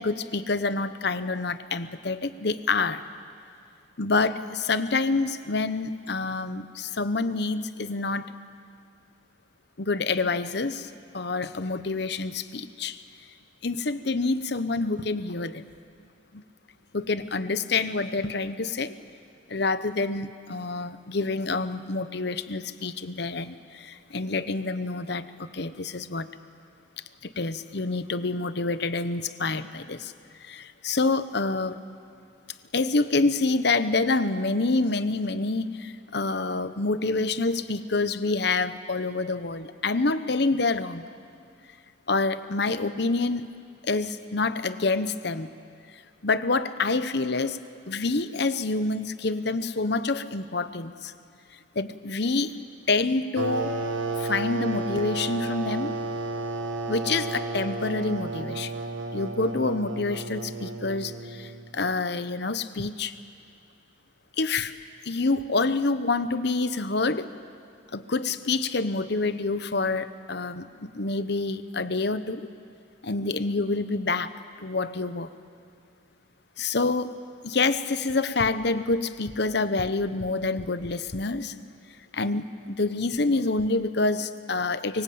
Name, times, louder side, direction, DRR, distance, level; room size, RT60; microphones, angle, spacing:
voice 1, 0.0-3.0 4.0-8.3 9.8-13.0 13.6-15.6 16.3-16.4 16.9-19.0 19.5-26.3 27.2-30.1 30.4-31.8 32.7-41.1 42.1-43.5 43.8-45.5 46.2-47.6 47.9-51.1 51.7-52.6 52.9-53.7 54.2-55.9 56.9-58.7 59.1-63.2 64.4-64.8 65.0-67.3 67.9-72.5 73.0-75.3 76.6-77.2 77.4-81.5 82.1-85.0, left 3 dB, 60° left, 12 dB, 1.0 m, -27 dB
sound 1, 53.4-61.8, right 3 dB, 85° right, 1.7 m, -32 dB
24.5 x 23.5 x 8.6 m, 2.3 s
head